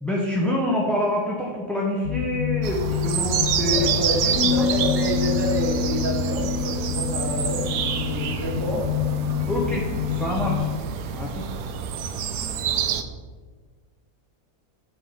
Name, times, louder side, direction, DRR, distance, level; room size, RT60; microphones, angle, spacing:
voice 1, 0.0-3.9 4.2-4.7 9.4-10.7 11.1-11.4, left 1 dB, ahead, -4 dB, 0.8 m, -26 dB
sound 1, 2.0-10.8, left 10 dB, 60° left, 0.6 m, -29 dB
sound 2, 2.6-13.0, right 7 dB, 90° right, 1.1 m, -28 dB
voice 2, 3.7-8.9, equal, 15° right, -5 dB, 2.1 m, -29 dB
Bass guitar, 4.3-10.6, left 4 dB, 75° right, 2.2 m, -30 dB
8.9 x 3.9 x 7.1 m, 1.5 s
omnidirectional pair, 1.5 m